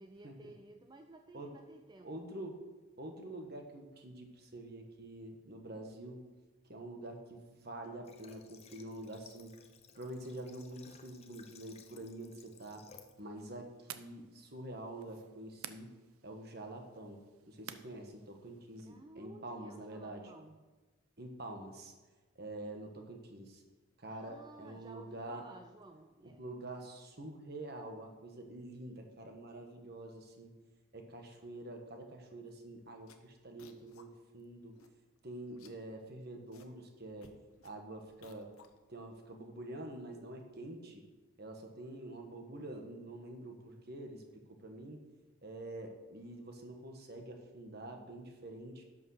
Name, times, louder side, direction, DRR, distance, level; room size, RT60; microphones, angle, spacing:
voice 1, 0.0-2.3 18.8-20.7 24.1-26.4, right 2 dB, 20° right, 5 dB, 0.4 m, -55 dB
voice 2, 2.0-2.6 3.0-6.2 6.7-9.5 9.9-12.9 13.2-15.9 16.2-17.2 17.5-20.3 21.2-21.9 22.3-23.6 24.0-25.4 26.2-30.5 30.9-34.8 35.2-37.3 37.6-38.5 38.9-41.0 41.4-45.0 45.4-48.8, right 1 dB, 50° right, 3 dB, 1.4 m, -46 dB
Water / Water tap faucet, 8.0-13.2, left 6 dB, 30° left, 0.7 m, -59 dB
sound 1, 13.2-18.9, right 10 dB, 90° right, 0.6 m, -54 dB
sound 2, 32.5-32.6 33.0-34.1 34.4-34.5 34.7-35.2 35.5-36.7 37.0-39.2, left 5 dB, 85° left, 0.9 m, -62 dB
11.0 x 5.4 x 6.5 m, 1.2 s
head